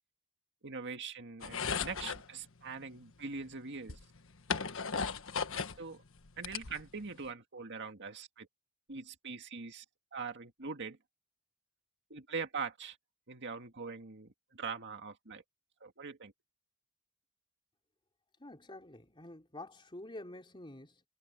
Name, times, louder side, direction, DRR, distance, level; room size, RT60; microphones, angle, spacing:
voice 1, 0.6-4.0 5.8-6.0 6.4-8.5 8.9-9.8 10.1-11.0 12.1-13.0 13.3-15.4 15.8-16.3, right 5 dB, 55° right, 2.1 m, -42 dB
sound 1, 1.4-2.3 3.4-3.5 3.9-5.8 6.2-7.2, left 5 dB, 60° left, 1.5 m, -36 dB
voice 2, 18.4-21.0, left 1 dB, 20° left, 3.8 m, -48 dB
head